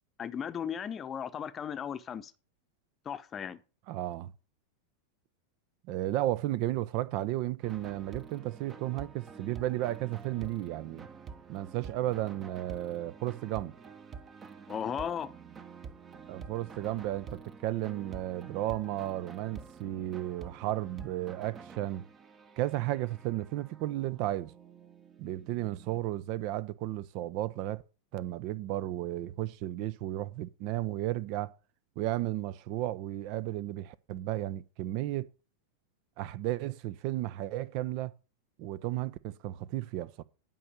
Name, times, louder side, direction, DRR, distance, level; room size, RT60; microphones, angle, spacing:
voice 1, 0.2-2.3 3.0-3.6 14.7-15.3, left 8 dB, 25° left, 0.9 m, -36 dB
voice 2, 3.9-4.3 5.9-11.1 11.5-13.8 16.3-22.1 22.6-24.5 25.2-27.8 28.1-31.5 32.0-35.3 36.2-38.1 38.6-40.2, right 14 dB, 45° right, 0.6 m, -34 dB
sound 1, 7.6-26.0, right 5 dB, 25° right, 1.0 m, -48 dB
11.0 x 5.4 x 6.5 m
figure-of-eight pair, 90°, 0 cm